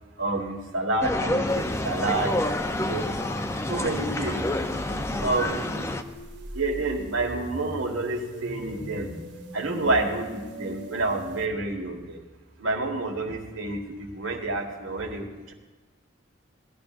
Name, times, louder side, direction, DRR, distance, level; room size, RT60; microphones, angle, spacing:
voice 1, 0.2-2.3 2.8-3.0 3.7-4.4 5.2-5.9 6.5-9.1 9.5-12.2 12.6-15.5, right 2 dB, 80° right, 2 dB, 1.7 m, -29 dB
sound 1, 1.0-6.0, left 1 dB, 15° left, 0.5 m, -28 dB
sound 2, 1.5-11.5, equal, 60° right, 1.7 m, -40 dB
19.0 x 12.0 x 2.6 m, 1.3 s
head